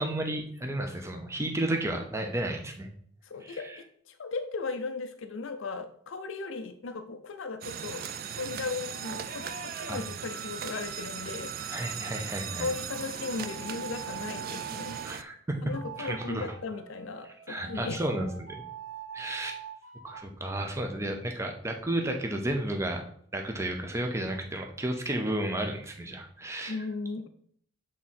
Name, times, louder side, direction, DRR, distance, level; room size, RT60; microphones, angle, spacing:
voice 1, 0.0-2.9 3.4-3.8 9.9-10.0 11.7-12.7 15.0-15.6 16.0-16.5 17.5-18.6 19.1-19.6 20.0-23.0 23.3-26.8, right 1 dB, 15° right, 3 dB, 0.7 m, -32 dB
voice 2, 3.2-8.0 8.3-11.5 12.6-15.0 15.6-18.0 26.7-27.3, left 4 dB, 70° left, 7 dB, 0.5 m, -37 dB
sound 1, 7.6-15.2, right 7 dB, 45° right, 0.4 m, -38 dB
sound 2, 8.7-15.1 15.7-20.2, right 6 dB, 65° right, 1.0 m, -45 dB
7.6 x 3.7 x 4.2 m, 0.62 s
head